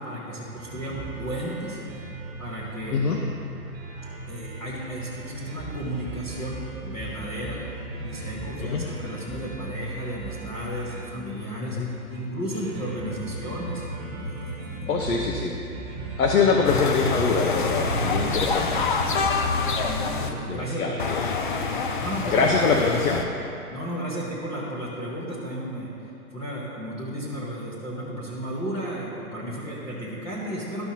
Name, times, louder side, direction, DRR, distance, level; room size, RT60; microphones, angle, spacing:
voice 1, 0.0-2.1 2.4-3.0 4.3-7.6 8.0-11.8 12.1-13.9 14.1-15.0 19.9-21.0 22.0-22.6 23.7-30.9, right 1 dB, 10° left, -9 dB, 0.8 m, -34 dB
sound 1, 0.6-19.5, right 2 dB, 25° right, 1.5 m, -37 dB
voice 2, 14.9-15.5 16.2-18.8 20.5-21.2 22.3-23.2, left 4 dB, 70° left, 0 dB, 1.0 m, -23 dB
sound 2, 16.6-20.3 21.0-23.2, left 4 dB, 35° left, 0.5 m, -26 dB
13.5 x 5.7 x 2.8 m, 2.7 s
hypercardioid pair, 145°, 46 cm